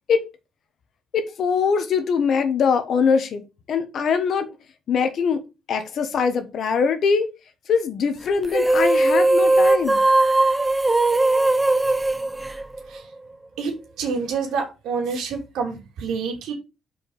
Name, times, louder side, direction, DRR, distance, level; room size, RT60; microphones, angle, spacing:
voice 1, 1.1-4.5 4.9-7.3 7.7-10.0, left 6 dB, 65° left, 1.2 m, -22 dB
sound 1, 8.4-13.2, right 2 dB, 15° right, 0.5 m, -19 dB
voice 2, 14.0-16.5, right 5 dB, 85° right, 2.6 m, -27 dB
5.1 x 4.6 x 4.8 m
cardioid pair, 90°, 0 cm